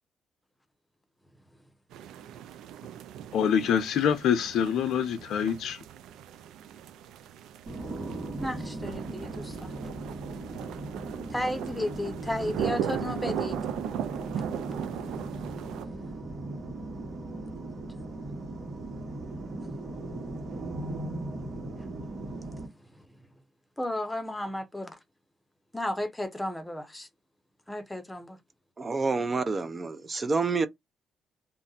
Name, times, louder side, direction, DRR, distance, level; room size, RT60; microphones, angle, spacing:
sound 1, 1.9-15.9, right 9 dB, 85° right, 0.3 m, -38 dB
voice 1, 3.3-5.8, left 8 dB, 75° left, 0.6 m, -25 dB
sound 2, 7.7-22.7, right 2 dB, 55° right, 1.2 m, -38 dB
voice 2, 8.4-9.7 11.3-13.6 15.0-15.8 22.9-23.0 23.8-25.0 25.7-27.1 27.7-28.4, left 1 dB, 10° left, 0.7 m, -34 dB
voice 3, 28.8-30.7, right 4 dB, 30° right, 0.5 m, -28 dB
2.6 x 2.1 x 3.9 m
cardioid pair, 90°, 0 cm